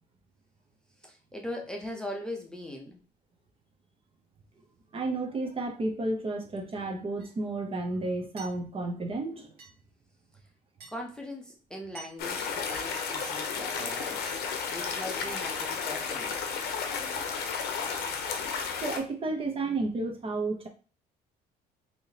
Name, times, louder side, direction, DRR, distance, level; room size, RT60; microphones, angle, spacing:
voice 1, 1.0-3.0 10.9-16.3, left 1 dB, 5° left, 1 dB, 0.6 m, -40 dB
voice 2, 4.9-9.6 18.8-20.7, right 2 dB, 35° right, 3 dB, 0.7 m, -32 dB
sound 1, 7.2-7.3 8.4-8.6 9.6-9.8 10.8-11.0 12.0-12.2 13.2-13.4 14.3-14.5 15.3-15.5 16.3-16.4, right 4 dB, 65° right, 1.5 m, -48 dB
sound 2, 12.2-19.0, left 5 dB, 70° left, 0.7 m, -33 dB
3.4 x 2.7 x 2.8 m, 0.37 s
cardioid pair, 110°, 17 cm